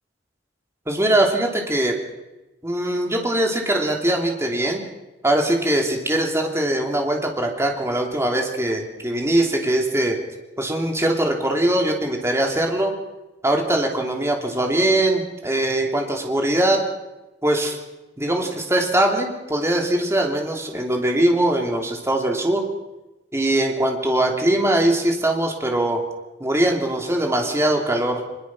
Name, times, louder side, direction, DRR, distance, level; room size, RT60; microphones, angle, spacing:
voice 1, 0.9-2.0 2.6-4.8 5.2-10.2 10.6-12.9 13.4-16.9 17.4-17.8 18.2-22.7 23.3-26.1 26.4-28.2, right 1 dB, 15° right, 2 dB, 3.2 m, -21 dB
23.0 x 21.5 x 6.2 m, 1.0 s
head